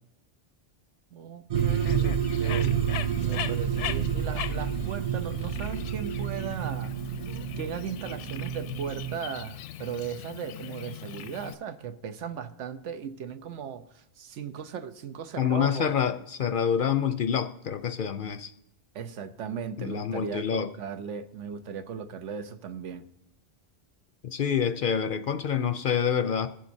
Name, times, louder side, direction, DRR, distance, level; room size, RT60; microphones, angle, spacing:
voice 1, 1.1-2.8 3.1-6.9 7.6-15.9 18.9-23.0, right 7 dB, 90° right, 10 dB, 1.1 m, -37 dB
Bird, 1.5-11.5, left 11 dB, 80° left, 0.9 m, -40 dB
sound 1, 1.5-9.2, right 8 dB, 55° right, 0.4 m, -29 dB
voice 2, 15.4-18.5 19.8-20.7 24.2-26.5, left 8 dB, 60° left, 9 dB, 0.6 m, -27 dB
22.5 x 7.7 x 2.7 m, 0.80 s
omnidirectional pair, 1.2 m